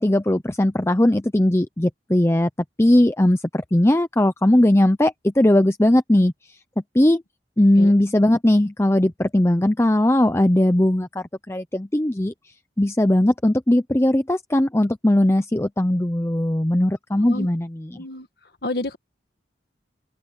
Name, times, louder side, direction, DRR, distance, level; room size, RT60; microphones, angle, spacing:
voice 1, 0.0-2.5 2.8-6.3 6.9-7.2 7.6-12.3 12.8-17.9, left 1 dB, 15° left, 0.6 m, -19 dB
voice 2, 18.0-18.3 18.6-19.0, left 2 dB, 60° left, 1.7 m, -29 dB
head